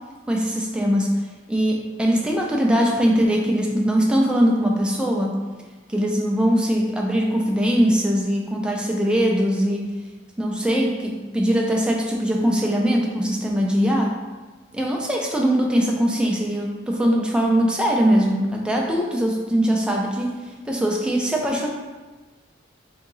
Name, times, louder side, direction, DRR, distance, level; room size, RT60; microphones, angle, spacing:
voice 1, 0.3-1.1 1.5-5.4 5.9-9.8 10.4-14.1 14.7-20.3 20.7-21.7, equal, 5° right, -1 dB, 0.5 m, -21 dB
3.7 x 2.8 x 3.9 m, 1.3 s
head